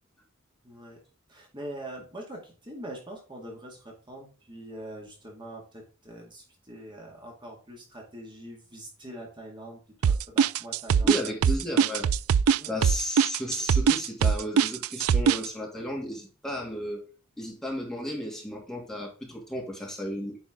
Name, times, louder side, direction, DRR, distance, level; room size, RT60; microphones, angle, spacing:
voice 1, 0.6-1.0 1.3-11.5 12.5-12.8, right 1 dB, 20° right, 2.1 m, -43 dB
sound 1, 10.0-15.5, right 7 dB, 75° right, 0.4 m, -21 dB
voice 2, 11.0-12.1 12.7-17.0 17.4-20.4, left 1 dB, ahead, 2.5 m, -34 dB
9.5 x 5.0 x 3.7 m
head